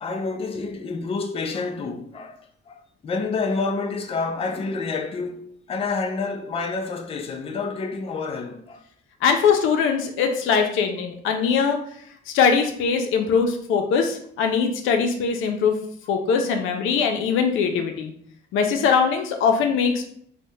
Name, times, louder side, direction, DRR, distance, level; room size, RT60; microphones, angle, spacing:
voice 1, 0.0-8.8, left 4 dB, 30° left, 0.4 m, -29 dB
voice 2, 9.2-11.8 12.3-15.8 16.1-18.1 18.5-20.1, left 6 dB, 85° left, 0.4 m, -21 dB
3.1 x 2.0 x 2.7 m
cardioid pair, 90°, 20 cm